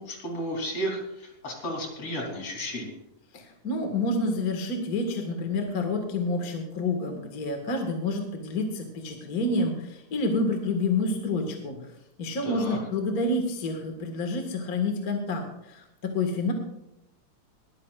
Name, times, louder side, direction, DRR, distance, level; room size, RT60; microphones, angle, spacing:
voice 1, 0.0-3.0 12.4-12.8, equal, 50° left, 0 dB, 4.4 m, -33 dB
voice 2, 3.3-11.8 12.2-16.5, left 2 dB, 35° left, 3 dB, 1.8 m, -28 dB
21.0 x 13.5 x 2.5 m, 0.88 s
omnidirectional pair, 3.5 m